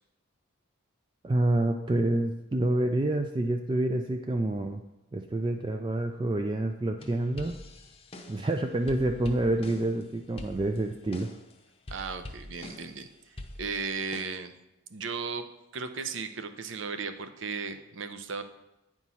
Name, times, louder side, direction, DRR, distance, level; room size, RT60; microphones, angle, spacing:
voice 1, 1.2-4.8 5.1-7.6 8.3-11.3, right 1 dB, 25° right, 5 dB, 0.3 m, -28 dB
sound 1, 7.0-8.5 8.9-10.0 10.4-11.5 11.9-13.0 13.4-14.2, left 1 dB, 25° left, 0.7 m, -44 dB
voice 2, 11.9-14.5 14.9-15.4 15.7-18.4, right 5 dB, 60° right, 9 dB, 0.6 m, -36 dB
9.4 x 4.5 x 5.5 m, 0.91 s
head